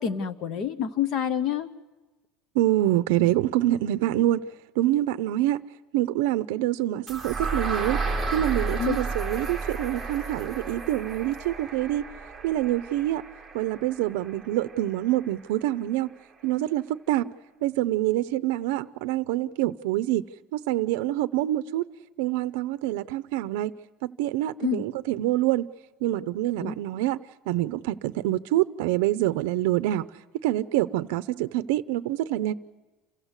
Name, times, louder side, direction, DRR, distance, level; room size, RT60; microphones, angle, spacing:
voice 1, 0.0-1.7 8.8-9.0 24.6-24.9 26.6-26.7, left 8 dB, 35° left, 1.0 m, -28 dB
voice 2, 2.5-4.4 4.8-5.6 5.9-8.0 8.3-12.0 12.4-13.2 13.5-16.1 16.4-17.3 17.6-20.2 20.5-21.8 22.2-23.7 24.0-25.7 26.0-27.2 27.5-30.1 30.4-32.5, right 14 dB, 70° right, 0.6 m, -26 dB
sound 1, 7.1-15.0, right 3 dB, ahead, 1.8 m, -33 dB
27.5 x 15.5 x 8.2 m
cardioid pair, 180°, 0 cm